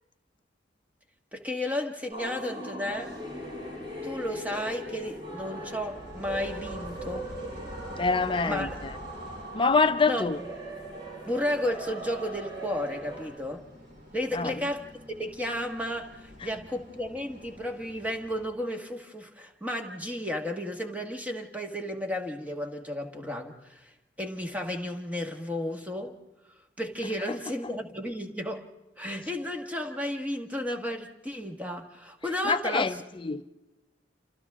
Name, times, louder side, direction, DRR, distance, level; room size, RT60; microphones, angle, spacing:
voice 1, 1.3-3.1 4.0-7.3 8.4-8.7 10.1-10.2 11.3-13.7 14.1-23.9 24.2-26.2 26.8-28.7 29.0-33.0, left 1 dB, 10° right, 1.6 m, -33 dB
sound 1, 2.1-13.2, right 1 dB, 30° right, 7.5 m, -40 dB
sound 2, 2.9-18.4, left 1 dB, 50° right, 4.9 m, -48 dB
voice 2, 7.9-8.7 9.5-10.4 14.3-14.5 32.4-33.0 33.2-33.4, left 4 dB, 30° left, 0.6 m, -25 dB
28.5 x 27.5 x 3.6 m
head